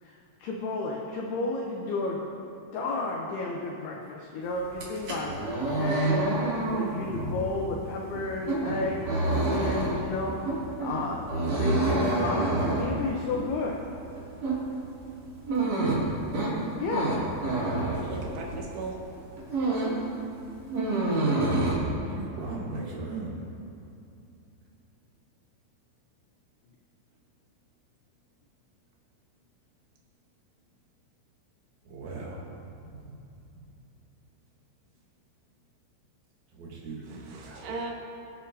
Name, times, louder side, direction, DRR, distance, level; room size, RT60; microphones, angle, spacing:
voice 1, 0.0-2.2 2.7-6.4 6.7-10.5 10.8-13.8 16.8-17.1, left 3 dB, 80° left, -1 dB, 2.3 m, -32 dB
sound 1, 4.7-18.7 19.1-20.1 20.3-21.7, right 2 dB, 40° right, 3.2 m, -28 dB
voice 2, 18.1-19.0 37.1-37.9, right 3 dB, 65° right, -2 dB, 3.3 m, -37 dB
voice 3, 22.1-23.4 31.8-32.6 32.8-33.1 36.5-37.6, right 3 dB, 90° right, -4 dB, 1.6 m, -38 dB
24.0 x 8.6 x 2.8 m, 2.7 s
omnidirectional pair, 5.7 m